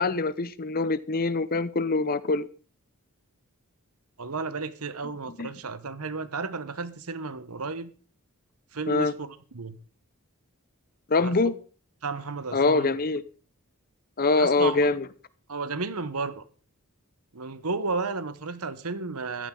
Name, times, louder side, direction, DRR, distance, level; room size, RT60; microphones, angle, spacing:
voice 1, 0.0-2.5 5.4-5.5 8.9-9.1 11.1-11.5 12.5-13.2 14.2-15.0, left 3 dB, 40° left, 0.7 m, -24 dB
voice 2, 4.2-7.9 8.7-9.8 11.2-11.3 12.0-12.9 14.4-14.9 15.5-16.4 17.3-19.5, right 4 dB, 80° right, 1.2 m, -33 dB
14.5 x 13.5 x 3.9 m
head